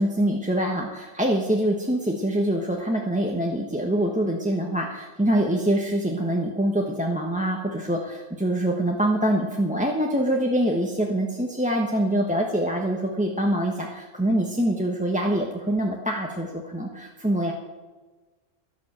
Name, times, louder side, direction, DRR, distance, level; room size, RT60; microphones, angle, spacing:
voice 1, 0.0-17.5, right 1 dB, 5° right, 0 dB, 1.1 m, -24 dB
12.0 x 11.5 x 7.4 m, 1.3 s
omnidirectional pair, 1.3 m